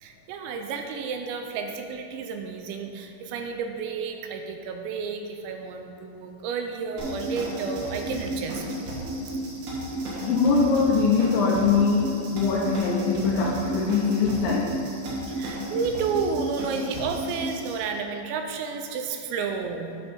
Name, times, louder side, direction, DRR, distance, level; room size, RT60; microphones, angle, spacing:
voice 1, 0.0-8.6 15.3-19.9, right 5 dB, 85° right, 5 dB, 2.7 m, -31 dB
sound 1, 7.0-17.7, right 1 dB, 65° right, 3.1 m, -33 dB
voice 2, 10.2-14.7, left 5 dB, 85° left, -5 dB, 2.0 m, -22 dB
9.5 x 5.6 x 4.2 m, 2.5 s
omnidirectional pair, 5.4 m